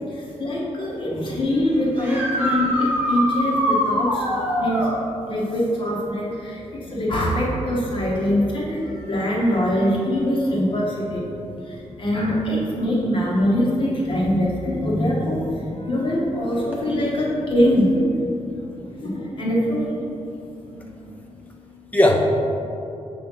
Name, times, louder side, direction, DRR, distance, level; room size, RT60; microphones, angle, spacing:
voice 1, 0.1-4.9 5.3-11.3 11.6-19.9 20.7-20.9, equal, 45° left, -4 dB, 1.4 m, -23 dB
sound 1, 2.0-4.9 8.3-8.4 10.4-10.5 16.7-16.8, equal, 15° right, 1.1 m, -23 dB
voice 2, 20.7-22.3, left 1 dB, 10° left, 0 dB, 0.7 m, -23 dB
7.2 x 3.3 x 5.5 m, 2.7 s
wide cardioid pair, 155°, 12 cm